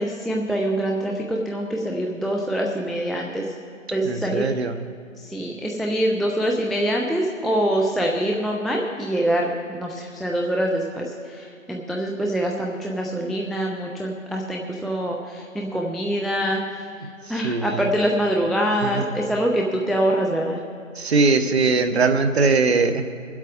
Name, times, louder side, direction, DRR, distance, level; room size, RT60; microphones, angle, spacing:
voice 1, 0.0-3.5 3.9-4.5 5.2-16.6 17.3-20.6, right 1 dB, ahead, -1 dB, 0.3 m, -24 dB
voice 2, 4.0-4.8 17.3-17.9 18.8-19.1 21.0-23.0, right 4 dB, 55° right, 9 dB, 0.8 m, -21 dB
24.0 x 8.1 x 3.6 m, 2.4 s
figure-of-eight pair, 165°, 40 cm